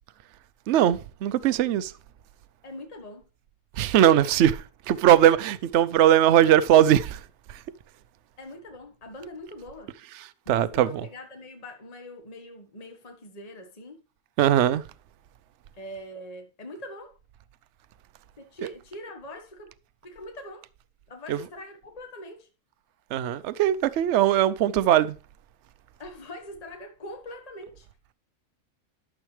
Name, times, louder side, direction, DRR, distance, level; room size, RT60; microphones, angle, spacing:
voice 1, 0.7-1.9 3.7-7.2 7.5-7.6 10.2-11.0 14.4-14.8 18.6-18.7 21.3-21.4 23.1-25.2, right 11 dB, 65° right, 0.8 m, -20 dB
voice 2, 2.6-3.3 8.4-9.9 10.4-14.0 15.8-17.2 18.4-19.7 20.0-20.7 21.1-22.5 26.0-27.9, left 1 dB, 25° left, 1.4 m, -42 dB
12.0 x 7.2 x 3.2 m
omnidirectional pair, 1.5 m